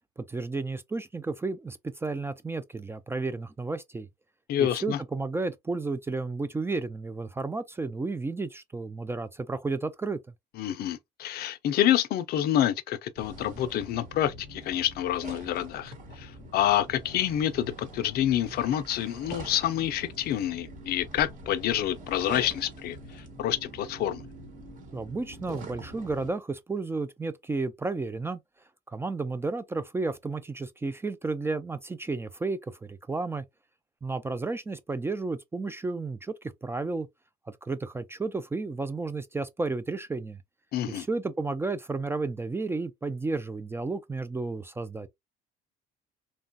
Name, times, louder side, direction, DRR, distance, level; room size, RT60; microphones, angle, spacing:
voice 1, 0.2-4.1 4.6-10.2 24.9-28.4 28.9-33.4 34.0-37.1 37.6-40.4 40.9-45.1, right 3 dB, 15° right, 0.3 m, -32 dB
voice 2, 4.5-5.0 10.6-24.2 40.7-41.1, left 11 dB, 65° left, 0.5 m, -28 dB
sound 1, 13.2-26.3, right 1 dB, 50° right, 1.1 m, -44 dB
3.0 x 2.2 x 2.5 m
cardioid pair, 110°, 17 cm